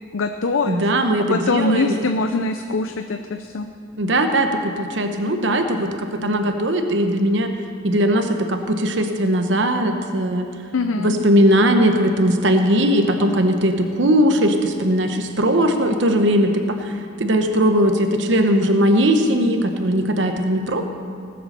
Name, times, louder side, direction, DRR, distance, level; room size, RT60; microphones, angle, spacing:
voice 1, 0.1-0.9 1.3-3.7 10.7-11.1, left 3 dB, 90° left, 6 dB, 0.6 m, -23 dB
voice 2, 0.7-1.9 4.0-5.9 6.2-7.5 7.8-10.5 11.0-16.6 17.2-20.8, equal, 65° right, 6 dB, 0.9 m, -19 dB
18.5 x 7.7 x 6.7 m, 2.5 s
head